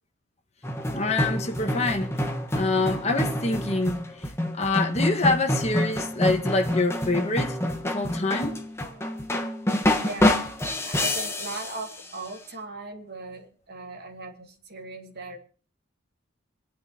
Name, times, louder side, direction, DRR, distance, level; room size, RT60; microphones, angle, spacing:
sound 1, 0.6-12.3, left 1 dB, 15° left, 1.3 m, -27 dB
voice 1, 0.9-2.1 2.6-4.0 4.6-7.6 7.8-8.5, left 2 dB, 35° left, 1.6 m, -25 dB
voice 2, 9.9-10.4 10.8-15.4, right 2 dB, 50° right, 2.3 m, -38 dB
26.5 x 9.4 x 2.9 m
head